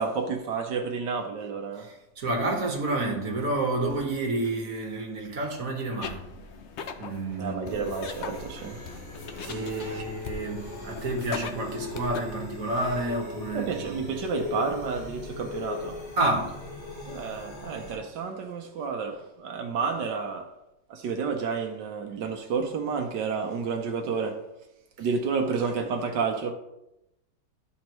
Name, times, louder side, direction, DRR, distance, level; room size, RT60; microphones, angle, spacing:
voice 1, 0.0-1.9 7.4-10.0 13.5-16.0 17.1-20.5 20.9-24.4 25.0-26.5, right 5 dB, 75° right, 1.4 m, -31 dB
voice 2, 1.8-6.3 7.0-7.8 9.5-14.0 16.2-16.6 25.0-25.1, right 2 dB, 50° right, 1.7 m, -30 dB
sound 1, 6.0-12.2, left 5 dB, 85° left, 0.6 m, -40 dB
sound 2, 7.7-18.0, left 3 dB, 40° left, 2.3 m, -39 dB
12.0 x 4.3 x 3.0 m
omnidirectional pair, 1.9 m